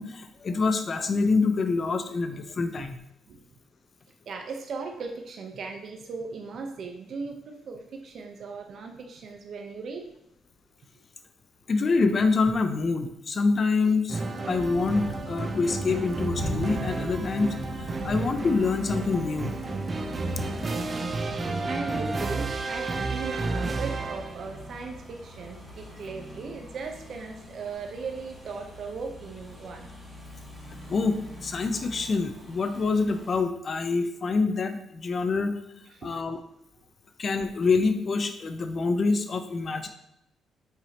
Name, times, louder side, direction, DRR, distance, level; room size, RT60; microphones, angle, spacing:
voice 1, 0.0-3.0 11.7-19.6 30.9-35.6 36.0-36.4 37.2-39.9, left 4 dB, 45° left, 8 dB, 0.8 m, -26 dB
voice 2, 4.3-10.1 21.6-29.9 35.9-36.1, right 4 dB, 60° right, 3 dB, 0.9 m, -38 dB
sound 1, 14.1-24.5, right 3 dB, 35° right, 0.7 m, -31 dB
sound 2, 14.5-33.4, equal, 5° left, 2.7 m, -41 dB
8.1 x 4.9 x 3.0 m, 0.79 s
cardioid pair, 90°, 0 cm